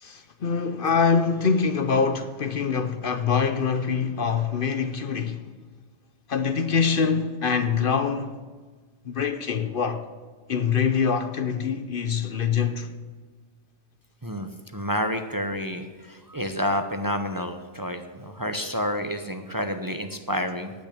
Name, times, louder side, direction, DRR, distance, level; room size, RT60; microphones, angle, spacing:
voice 1, 0.0-5.4 6.3-8.4 9.1-10.0 10.5-12.9, left 6 dB, 55° left, 0.9 m, -24 dB
voice 2, 14.2-20.7, equal, 20° right, 0.8 m, -29 dB
18.5 x 6.2 x 8.7 m
omnidirectional pair, 1.2 m